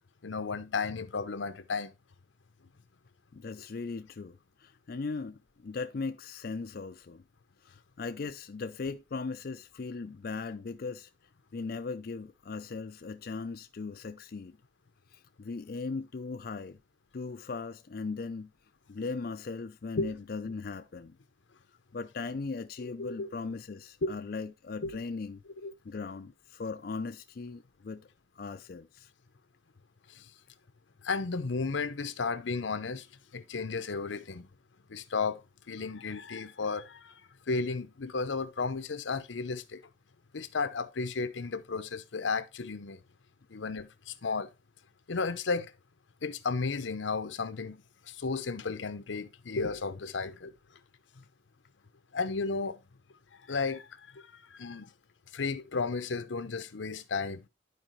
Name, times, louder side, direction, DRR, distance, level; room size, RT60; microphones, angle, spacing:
voice 1, 0.2-1.9 20.0-20.1 23.0-23.3 24.0-24.2 24.8-25.0 25.6-25.7 30.1-30.3 31.0-33.1 33.3-34.5 34.9-35.4 35.7-37.1 37.5-39.8 40.3-43.0 43.5-44.5 45.1-45.7 46.2-50.5 52.1-52.8 53.5-53.9 54.1-54.9 55.3-57.4, left 4 dB, 85° left, 0.7 m, -33 dB
voice 2, 3.3-7.2 7.7-11.1 11.5-14.6 15.1-16.8 17.1-18.5 18.9-21.2 21.9-25.4 25.8-28.1 28.4-29.1, left 4 dB, 55° left, 0.4 m, -38 dB
11.5 x 4.9 x 3.1 m
head